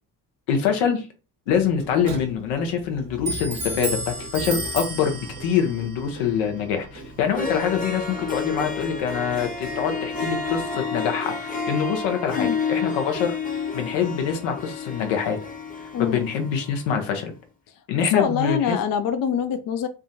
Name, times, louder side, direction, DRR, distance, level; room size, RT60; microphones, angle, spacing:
voice 1, 0.5-1.1 1.5-13.4 13.7-15.4 16.0-17.3 17.9-18.8, left 7 dB, 75° left, 0.8 m, -25 dB
Clock, 1.5-10.7, right 2 dB, 85° right, 1.0 m, -35 dB
Harp, 7.1-7.2 7.3-16.9, left 5 dB, 20° left, 0.9 m, -30 dB
voice 2, 15.9-16.2 18.0-19.9, left 8 dB, 50° left, 0.5 m, -24 dB
3.5 x 2.2 x 2.6 m
hypercardioid pair, 45°, 46 cm